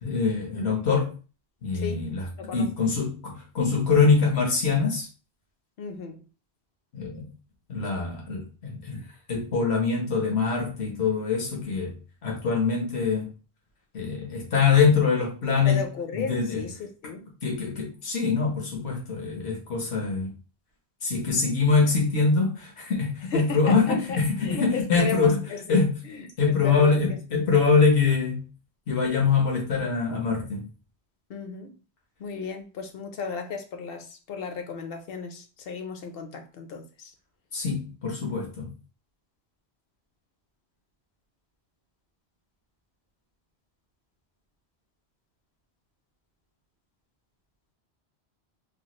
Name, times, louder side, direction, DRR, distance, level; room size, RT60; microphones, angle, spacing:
voice 1, 0.0-1.1 1.6-2.2 2.5-5.1 6.9-7.3 7.7-9.0 9.3-11.9 12.2-13.3 13.9-15.8 16.1-16.6 17.4-20.3 21.0-25.4 25.7-25.9 26.4-28.4 28.9-30.6 37.5-38.7, left 4 dB, 85° left, 1.3 m, -24 dB
voice 2, 1.7-2.7 5.8-6.2 15.6-17.3 23.3-27.0 31.3-31.8 32.2-37.1, left 5 dB, 70° left, 0.8 m, -35 dB
3.1 x 2.3 x 2.9 m
omnidirectional pair, 1.1 m